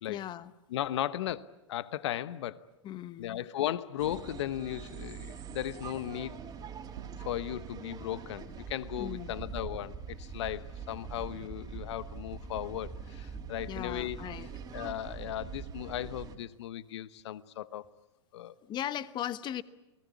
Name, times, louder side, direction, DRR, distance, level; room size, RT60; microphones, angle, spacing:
voice 1, 0.1-0.5 2.8-3.4 9.0-9.4 13.7-14.5 18.6-19.6, left 11 dB, 30° left, 1.1 m, -38 dB
voice 2, 0.7-2.6 3.2-6.4 7.2-14.2 14.7-17.9 18.3-18.5, left 12 dB, 65° left, 1.1 m, -36 dB
sound 1, 4.0-16.4, right 6 dB, 25° right, 3.4 m, -43 dB
sound 2, 7.0-9.5, right 5 dB, 75° right, 3.8 m, -53 dB
30.0 x 19.5 x 8.4 m
hypercardioid pair, 105°, 16 cm